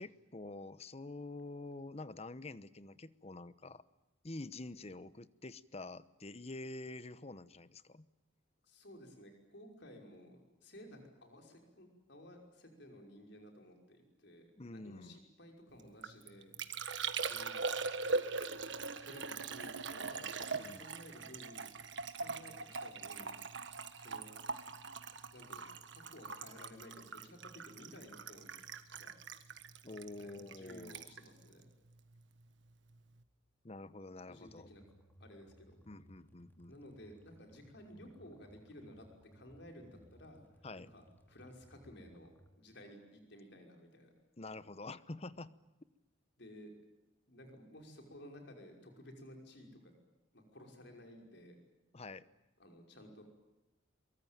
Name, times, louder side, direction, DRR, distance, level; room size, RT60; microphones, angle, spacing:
voice 1, 0.0-3.8 4.2-8.1 14.6-15.2 20.5-20.9 29.8-31.1 33.6-34.7 35.9-36.7 40.6-40.9 44.4-45.5 51.9-52.2, left 2 dB, 30° left, 16 dB, 0.9 m, -47 dB
voice 2, 8.6-16.6 17.2-17.6 19.0-21.7 22.1-23.4 23.9-24.3 25.3-28.5 28.9-29.1 30.2-31.7 34.2-34.8 35.2-35.8 36.7-40.5 40.8-44.1 46.4-46.8 47.3-49.9 50.3-51.6 52.6-53.2, left 1 dB, 60° left, 3 dB, 5.6 m, -55 dB
Liquid, 15.8-32.4 32.7-33.2, right 4 dB, 65° right, 1.6 m, -42 dB
sound 1, 34.5-42.5, equal, 10° left, 2.4 m, -63 dB
23.5 x 23.5 x 9.2 m, 0.99 s
head